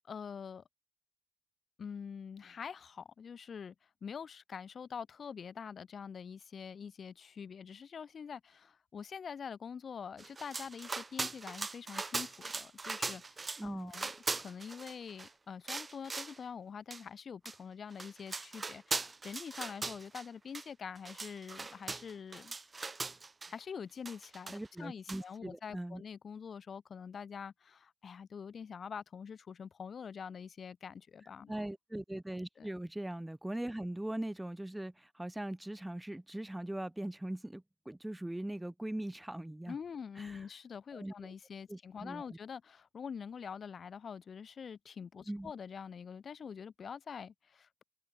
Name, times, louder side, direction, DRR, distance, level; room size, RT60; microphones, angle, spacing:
voice 1, 0.1-0.6 1.8-14.1 14.4-22.6 22.9-23.0 23.5-24.5 24.8-31.5 32.6-32.7 39.7-47.8, left 6 dB, 45° left, 3.9 m, -45 dB
sound 1, 10.2-13.6 13.9-15.3 15.7-16.4 16.9-17.0 17.5-17.6 17.9-20.3 20.5-20.7 21.0-23.5 24.1-24.8 25.1-25.2, right 3 dB, 25° right, 1.9 m, -40 dB
voice 2, 13.6-13.9 24.5-26.0 31.5-39.8 40.2-40.4 40.9-41.3 41.7-42.3 45.3-45.5, right 1 dB, 10° right, 2.4 m, -40 dB
cardioid pair, 90°, 0 cm